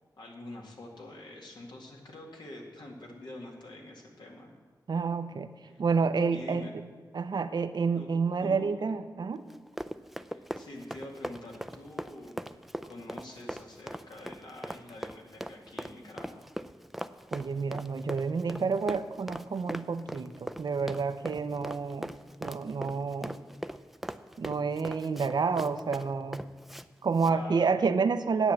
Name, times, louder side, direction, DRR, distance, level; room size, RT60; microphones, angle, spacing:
voice 1, 0.2-4.6 5.6-5.8 6.3-6.7 7.9-8.1 8.4-8.8 10.3-12.3 12.8-16.5 27.2-27.7, left 1 dB, 80° left, -1 dB, 2.1 m, -46 dB
voice 2, 4.9-5.5 5.8-6.7 7.1-9.4 17.3-22.1 22.4-23.3 24.4-26.4 27.0-28.5, right 5 dB, 70° right, 10 dB, 0.6 m, -29 dB
Run, 9.5-26.9 27.1-27.4, equal, ahead, 0.4 m, -40 dB
9.9 x 8.2 x 7.4 m, 1.5 s
cardioid pair, 60°, 8 cm